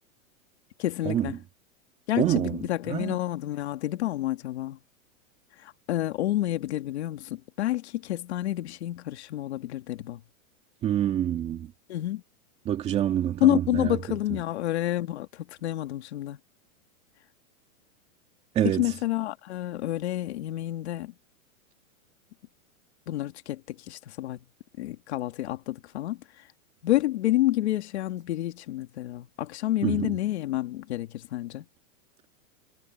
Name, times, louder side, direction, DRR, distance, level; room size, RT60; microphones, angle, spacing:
voice 1, 0.8-1.3 2.1-4.8 5.6-10.2 11.9-12.2 13.4-16.4 18.8-21.1 23.1-24.4 24.8-26.2 26.8-31.6, left 15 dB, 50° left, 2.3 m, -29 dB
voice 2, 2.2-3.2 10.8-11.7 12.7-14.0 18.5-18.9 29.8-30.2, right 11 dB, 15° right, 2.3 m, -27 dB
supercardioid pair, 180°, 41 cm